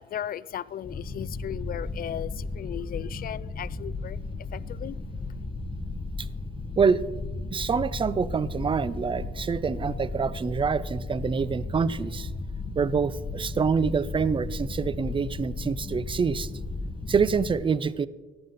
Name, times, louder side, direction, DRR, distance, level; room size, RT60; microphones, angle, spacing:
voice 1, 0.0-5.3, left 10 dB, 50° left, 21 dB, 0.4 m, -37 dB
sound 1, 0.8-17.5, left 3 dB, 25° left, 1.7 m, -35 dB
voice 2, 7.5-12.3 12.8-16.5 17.1-18.1, right 5 dB, 25° right, 19 dB, 0.5 m, -26 dB
14.5 x 9.6 x 4.1 m, 1.3 s
cardioid pair, 90°, 20 cm